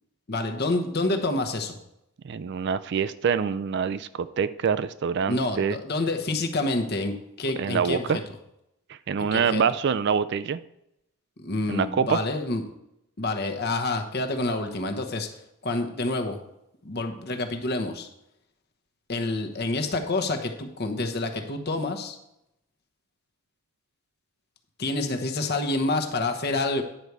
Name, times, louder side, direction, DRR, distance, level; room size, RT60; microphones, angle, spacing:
voice 1, 0.3-1.8 5.3-8.1 9.2-9.6 11.4-12.6 13.2-15.3 15.6-16.4 16.8-18.1 19.1-22.2 24.8-26.8, left 2 dB, 45° left, 5 dB, 1.0 m, -28 dB
voice 2, 2.2-5.8 7.6-8.2 8.9-10.6 11.7-12.2, right 6 dB, 50° right, 15 dB, 0.3 m, -25 dB
10.0 x 4.7 x 6.7 m, 0.83 s
head